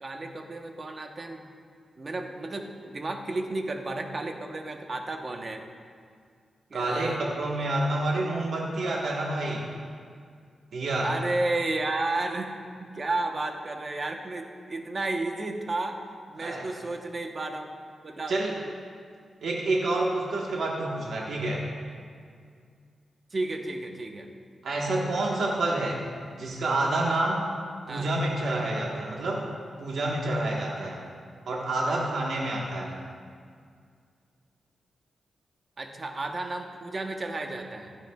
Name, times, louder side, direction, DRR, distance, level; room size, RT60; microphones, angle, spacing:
voice 1, 0.0-1.5 2.0-5.6 6.7-7.2 11.0-12.6 12.9-16.0 16.3-17.7 18.0-18.3 23.3-24.3 27.9-28.1 35.8-38.0, right 2 dB, 40° right, 4 dB, 1.0 m, -32 dB
voice 2, 6.7-9.7 10.7-11.1 16.4-16.7 18.3-18.6 19.4-21.7 24.6-26.0 26.4-27.5 27.9-29.5 29.8-31.0 31.5-32.9, right 2 dB, 75° right, -3 dB, 1.3 m, -28 dB
16.0 x 12.0 x 2.4 m, 2.2 s
wide cardioid pair, 100°, 0 cm